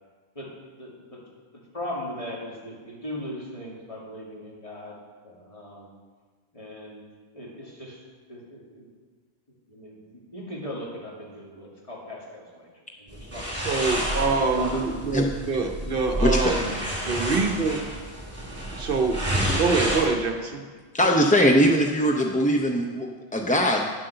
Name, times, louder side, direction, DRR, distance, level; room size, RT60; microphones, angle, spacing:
voice 1, 0.8-1.2 1.5-5.0 5.2-5.9 6.5-7.0 7.3-8.0 8.3-8.9 9.7-10.0 10.3-12.7 13.0-13.6 14.3-15.1, left 1 dB, 30° left, -4 dB, 2.4 m, -38 dB
sound 1, 13.1-20.0, right 1 dB, 15° right, 2.4 m, -29 dB
voice 2, 13.7-17.8 18.7-20.6, right 4 dB, 60° right, 5 dB, 0.9 m, -25 dB
voice 3, 16.2-16.5 20.9-23.9, equal, 10° left, 0 dB, 0.4 m, -21 dB
9.9 x 7.6 x 6.7 m, 1.5 s
omnidirectional pair, 1.1 m